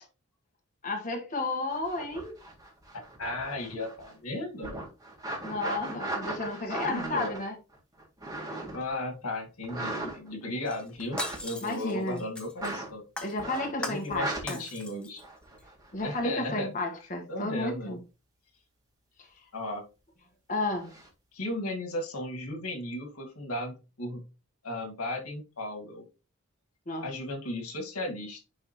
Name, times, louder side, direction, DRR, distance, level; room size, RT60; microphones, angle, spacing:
voice 1, 0.8-2.3 5.4-7.6 11.6-12.2 13.2-14.6 15.9-18.0 20.5-20.9 26.9-27.0, left 2 dB, 35° left, 1.5 m, -32 dB
sound 1, 1.7-4.2 4.6-8.9 9.6-10.5 11.0-11.4 12.6-12.9 13.4-13.8 14.1-14.4 15.2-16.2 20.7-21.1, right 2 dB, 15° right, 1.9 m, -38 dB
voice 2, 3.2-4.8 6.4-7.3 8.7-13.0 13.8-15.2 16.0-16.7 17.3-18.0 19.5-19.8 21.3-24.2 24.6-26.0 27.0-28.4, left 1 dB, 85° left, 2.0 m, -35 dB
Shatter, 10.7-12.8 13.2-14.2 14.5-15.2 15.6-15.7, left 1 dB, 5° left, 0.9 m, -39 dB
10.5 x 3.6 x 3.0 m
head